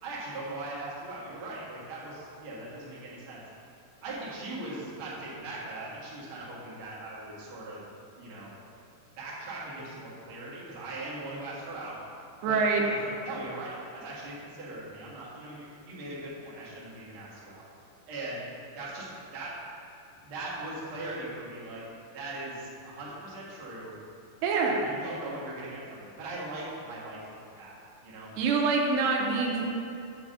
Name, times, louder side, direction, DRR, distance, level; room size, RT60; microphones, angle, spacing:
voice 1, 0.0-3.4 4.0-7.8 8.2-8.5 9.2-12.0 12.4-17.6 18.1-18.4 18.7-19.6 20.2-21.8 22.1-23.9 24.8-27.7 28.0-28.3, right 2 dB, 55° right, -7 dB, 1.4 m, -40 dB
voice 2, 12.4-12.8 24.4-24.8 28.4-29.7, right 4 dB, 80° right, 0 dB, 2.9 m, -25 dB
8.2 x 3.9 x 6.7 m, 2.6 s
omnidirectional pair, 5.0 m